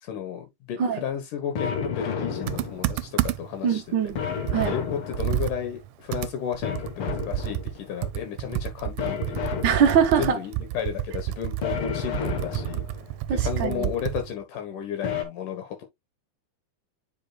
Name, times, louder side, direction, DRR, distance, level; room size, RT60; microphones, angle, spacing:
voice 1, 0.0-3.9 4.6-9.5 10.1-12.8 13.3-15.8, left 9 dB, 90° left, 3.0 m, -33 dB
sound 1, 1.6-3.1 4.2-5.7 6.6-7.9 9.0-10.4 11.6-13.1 15.0-15.2, left 7 dB, 55° left, 1.7 m, -32 dB
Computer keyboard, 2.5-3.6 4.1-4.2 4.5-14.3, right 14 dB, 90° right, 2.1 m, -30 dB
voice 2, 3.6-4.2 4.5-4.7 9.6-10.4 13.3-13.9, right 7 dB, 65° right, 1.1 m, -22 dB
9.1 x 5.1 x 2.3 m
omnidirectional pair, 3.5 m